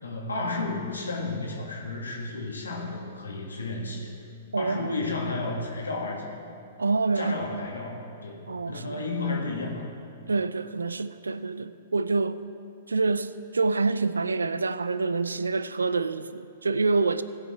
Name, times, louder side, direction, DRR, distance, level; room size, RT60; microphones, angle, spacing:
voice 1, 0.0-4.1 4.6-6.4 7.2-9.9, left 3 dB, 85° left, 2.0 m, -32 dB
voice 2, 4.5-5.0 6.8-7.6 8.5-9.0 10.3-12.4 12.9-17.2, right 3 dB, 85° right, 0.4 m, -27 dB
16.5 x 6.0 x 4.4 m
hypercardioid pair, 115°, 0 cm